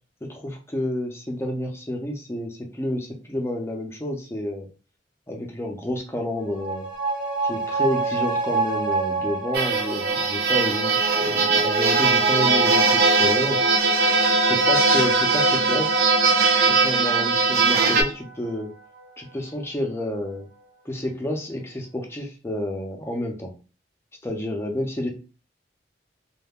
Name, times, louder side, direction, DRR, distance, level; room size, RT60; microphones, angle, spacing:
voice 1, 0.3-4.7 5.3-6.9 7.4-13.6 14.4-16.0 16.6-18.7 19.2-20.5 20.9-23.5 24.2-25.1, left 1 dB, 15° left, 1 dB, 0.5 m, -29 dB
sound 1, 6.3-19.2 19.5-19.6, right 3 dB, 75° right, 0.8 m, -28 dB
sound 2, 9.5-18.0, right 4 dB, 55° right, 0.5 m, -20 dB
2.2 x 2.1 x 3.5 m, 0.34 s
head